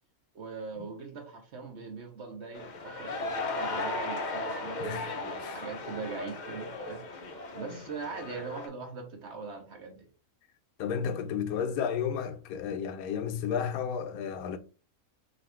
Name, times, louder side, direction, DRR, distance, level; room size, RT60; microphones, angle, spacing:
voice 1, 0.3-10.1, right 4 dB, 55° right, 1.2 m, -41 dB
sound 1, 2.5-8.7, left 2 dB, 55° left, 0.5 m, -36 dB
voice 2, 4.8-5.6 10.8-14.6, left 7 dB, 85° left, 1.0 m, -33 dB
3.9 x 2.5 x 4.4 m
omnidirectional pair, 1.5 m